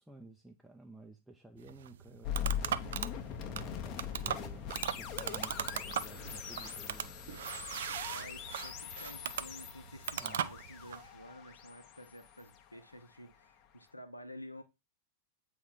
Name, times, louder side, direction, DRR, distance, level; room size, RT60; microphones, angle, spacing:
voice 1, 0.0-7.2 10.2-10.6, right 2 dB, 5° right, 0.6 m, -54 dB
sound 1, 1.6-11.1, right 9 dB, 60° right, 0.3 m, -39 dB
sound 2, 2.2-13.3, left 9 dB, 40° left, 0.7 m, -42 dB
voice 2, 8.1-14.6, equal, 85° left, 0.8 m, -51 dB
7.9 x 3.1 x 3.9 m
figure-of-eight pair, 90°, 0 cm